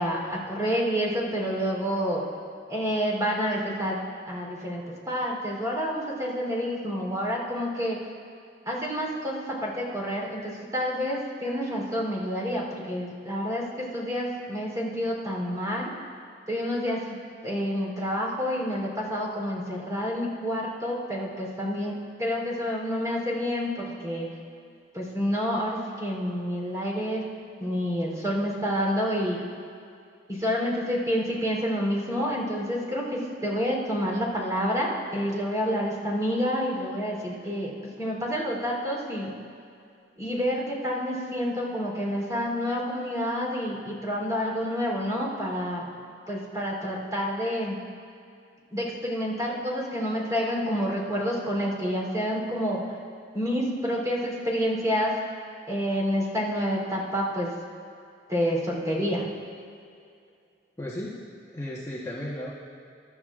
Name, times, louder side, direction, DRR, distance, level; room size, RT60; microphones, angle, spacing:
voice 1, 0.0-2.2 2.7-4.0 4.3-8.0 8.6-15.9 16.5-17.1 17.4-21.9 22.2-24.3 24.9-27.2 27.6-29.4 30.4-37.7 38.0-39.3 40.2-45.8 46.3-47.8 48.7-52.8 53.3-55.1 55.7-57.6 58.3-59.3, equal, 20° right, -4 dB, 3.5 m, -28 dB
voice 2, 60.8-61.2 61.5-62.5, left 1 dB, 15° left, -7 dB, 1.2 m, -34 dB
23.5 x 11.5 x 2.5 m, 2.4 s
head